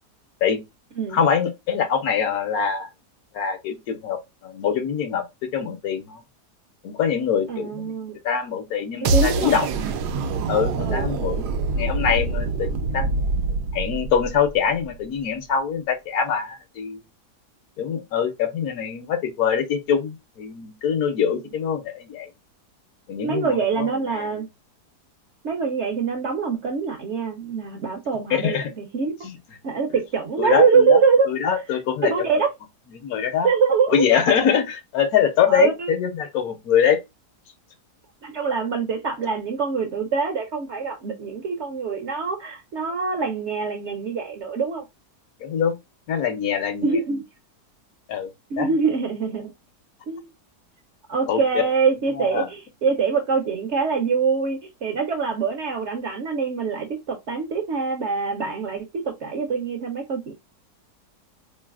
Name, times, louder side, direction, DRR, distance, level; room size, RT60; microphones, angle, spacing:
voice 1, 1.1-2.9 3.3-5.2 5.5-6.2 6.8-7.9 8.2-9.7 10.5-11.5 11.8-13.2 13.7-17.0 17.8-22.3 23.1-24.3 28.3-28.7 29.2-29.4 30.4-31.0 31.3-32.3 32.9-33.5 33.9-37.0 45.4-45.7 46.1-47.0 48.1-48.3 48.6-48.7 51.3-51.4 52.1-52.5, left 7 dB, 70° left, 1.1 m, -24 dB
voice 2, 7.5-8.2 9.0-9.6 10.9-11.1 21.3-21.4 23.2-24.5 25.4-29.1 29.6-31.3 32.0-32.5 33.4-34.0 35.5-35.9 38.2-44.9 46.8-47.2 48.5-49.5 50.1-50.3 51.1-60.3, right 5 dB, 60° right, 0.8 m, -24 dB
sound 1, 9.0-15.0, right 3 dB, 85° right, 1.2 m, -25 dB
3.9 x 3.1 x 2.3 m
omnidirectional pair, 1.7 m